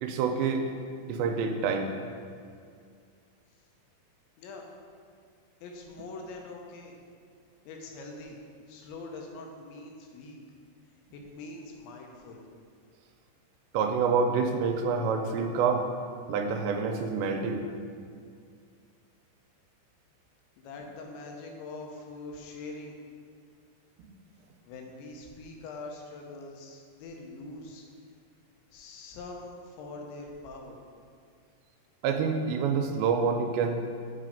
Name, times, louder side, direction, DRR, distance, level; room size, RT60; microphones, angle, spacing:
voice 1, 0.0-0.7 1.1-2.0 13.7-15.9 16.3-17.7 24.0-24.1 32.0-33.9, right 5 dB, 85° right, 5 dB, 2.7 m, -27 dB
voice 2, 4.4-4.7 5.6-7.0 7.7-8.4 8.7-10.4 11.1-12.4 20.6-23.0 24.6-27.9 28.7-30.8, left 3 dB, 85° left, 1 dB, 3.2 m, -43 dB
8.6 x 4.1 x 5.1 m, 2.3 s
omnidirectional pair, 5.1 m